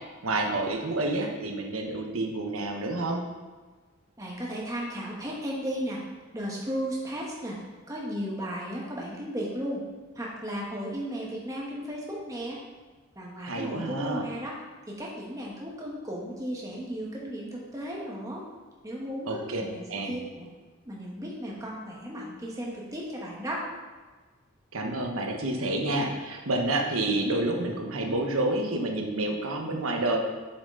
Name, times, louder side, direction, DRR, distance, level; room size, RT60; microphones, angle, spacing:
voice 1, 0.2-3.2 13.4-14.2 19.3-20.2 24.7-30.2, right 2 dB, 80° right, 2 dB, 1.2 m, -29 dB
voice 2, 4.2-6.0 6.3-7.6 7.9-9.8 10.1-12.6 13.1-14.5 14.9-18.4 18.8-20.5 20.8-23.6, equal, 15° right, -3 dB, 1.4 m, -35 dB
7.4 x 6.0 x 3.9 m, 1.3 s
head